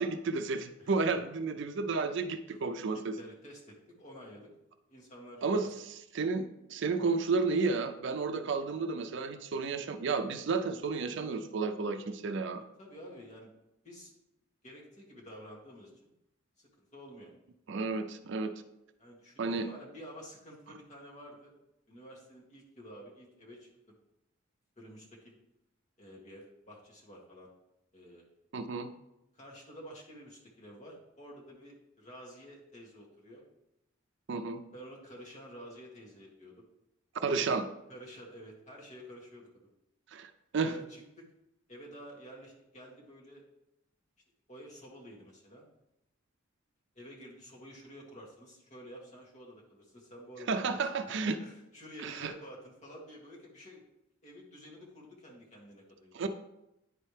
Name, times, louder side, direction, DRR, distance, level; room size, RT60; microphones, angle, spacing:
voice 1, 0.0-3.1 5.4-5.7 6.1-12.6 17.7-18.5 19.4-19.7 28.5-28.9 34.3-34.6 37.1-37.7 40.1-40.8 50.5-51.4 52.0-52.3 56.1-56.3, right 4 dB, 60° right, 9 dB, 0.4 m, -32 dB
voice 2, 2.9-4.5 4.9-5.7 12.6-13.5 13.8-14.1 14.6-16.1 16.6-17.3 19.0-21.5 21.9-24.0 24.8-25.4 26.0-27.5 27.9-28.3 29.3-33.4 34.7-36.6 37.9-39.7 40.6-41.3 41.7-43.4 44.5-45.7 47.0-53.8 54.2-56.3, equal, 35° left, -3 dB, 1.8 m, -50 dB
9.9 x 4.3 x 3.3 m, 0.87 s
head